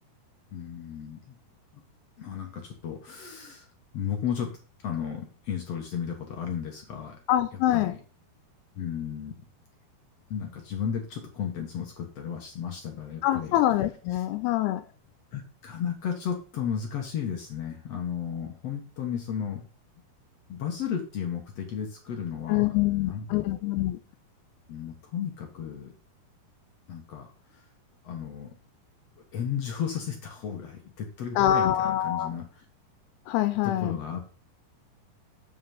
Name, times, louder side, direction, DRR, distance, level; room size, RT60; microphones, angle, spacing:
voice 1, 0.5-1.4 2.2-3.7 3.9-4.6 4.8-7.2 7.7-8.0 8.8-9.3 10.3-13.6 15.3-19.7 20.5-22.7 23.0-23.6 24.7-25.9 26.9-27.7 28.0-28.5 29.3-32.6 33.6-34.2, left 8 dB, 60° left, 1.8 m, -34 dB
voice 2, 7.3-8.0 13.2-14.8 22.5-24.0 31.4-32.3 33.3-34.0, left 13 dB, 90° left, 2.7 m, -25 dB
8.2 x 5.8 x 5.5 m
omnidirectional pair, 4.5 m